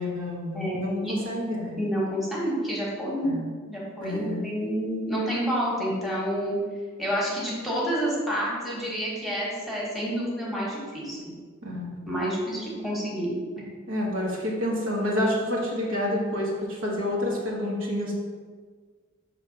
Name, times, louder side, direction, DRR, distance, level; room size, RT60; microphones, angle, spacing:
voice 1, 0.0-1.8 3.2-3.5 4.0-4.4 11.6-11.9 13.9-18.1, left 1 dB, 70° right, -3 dB, 1.3 m, -28 dB
voice 2, 0.5-1.1 1.8-3.4 3.7-6.6 7.0-11.2 12.1-13.3, equal, ahead, -6 dB, 1.3 m, -29 dB
6.0 x 3.1 x 5.1 m, 1.6 s
head